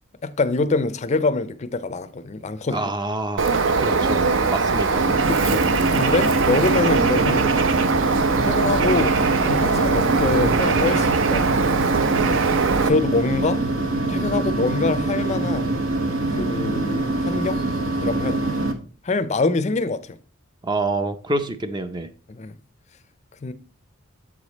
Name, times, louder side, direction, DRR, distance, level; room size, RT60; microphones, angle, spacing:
voice 1, 0.2-2.9 5.3-7.5 8.4-9.2 9.5-11.5 12.7-13.6 14.1-15.8 16.3-17.6 18.0-18.6 19.0-20.2 22.3-22.6 23.4-23.5, left 3 dB, 35° left, 0.5 m, -25 dB
voice 2, 2.7-4.2 4.5-5.0 20.6-22.1, right 2 dB, 20° right, 0.5 m, -27 dB
Bird, 3.4-12.9, right 4 dB, 65° right, 0.6 m, -21 dB
sound 1, 4.9-18.7, right 2 dB, 80° right, 1.0 m, -24 dB
7.7 x 5.0 x 4.0 m
head